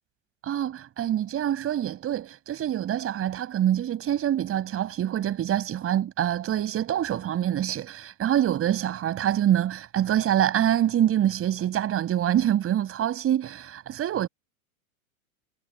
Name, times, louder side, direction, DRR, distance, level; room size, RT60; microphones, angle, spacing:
voice 1, 0.4-14.3, right 11 dB, 30° right, 7.0 m, -25 dB
hypercardioid pair, 120°, 42 cm